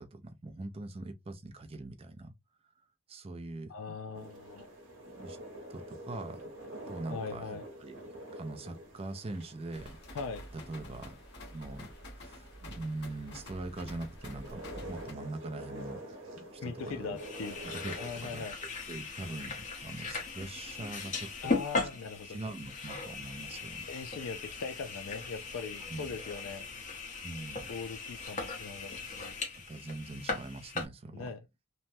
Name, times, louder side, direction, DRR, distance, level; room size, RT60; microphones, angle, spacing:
voice 1, 0.0-2.3 3.1-3.7 5.2-5.4 5.7-6.4 6.9-7.5 7.8-8.0 8.3-10.2 10.5-11.2 11.5-17.2 17.7-18.4 18.9-19.5 19.8-21.7 22.2-23.9 25.9-26.1 27.2-27.7 29.7-31.3, right 2 dB, 25° right, 0.4 m, -42 dB
voice 2, 3.7-4.6 7.1-7.6 10.1-10.5 16.6-17.6 18.0-18.6 21.4-22.4 23.9-26.7 27.7-29.4 31.1-31.5, left 5 dB, 75° left, 0.4 m, -40 dB
sound 1, 4.1-18.1, right 1 dB, 65° right, 1.0 m, -47 dB
sound 2, 9.7-15.1, equal, 55° left, 1.1 m, -48 dB
sound 3, 17.2-30.9, left 3 dB, 35° left, 0.9 m, -38 dB
3.1 x 2.2 x 2.6 m
head